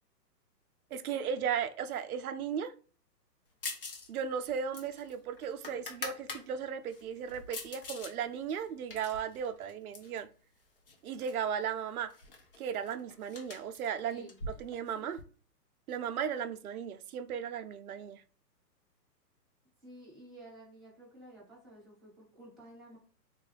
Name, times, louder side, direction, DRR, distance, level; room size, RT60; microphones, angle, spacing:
voice 1, 0.9-2.7 4.1-10.3 11.0-12.1 12.6-14.2 14.6-15.2 15.9-18.2, right 7 dB, 60° right, 0.5 m, -36 dB
sound 1, 3.6-4.1 4.4-6.4 6.9-8.1 8.5-10.2 10.9-11.4 11.7-11.8 12.1-15.2, left 3 dB, 35° left, 0.5 m, -44 dB
voice 2, 19.8-23.0, right 1 dB, ahead, 1.2 m, -52 dB
3.7 x 2.3 x 3.2 m
hypercardioid pair, 150°, 50 cm